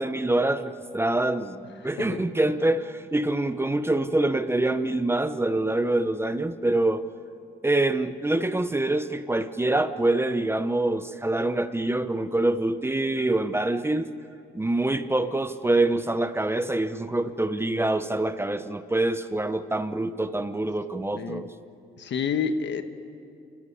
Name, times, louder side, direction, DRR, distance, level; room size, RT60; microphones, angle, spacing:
voice 1, 0.0-7.0 7.6-14.1 14.5-21.5, right 2 dB, 10° right, 11 dB, 0.8 m, -25 dB
voice 2, 21.1-21.4 22.0-22.8, left 6 dB, 65° left, 8 dB, 1.4 m, -28 dB
27.0 x 14.0 x 9.8 m, 2.5 s
cardioid pair, 90°, 20 cm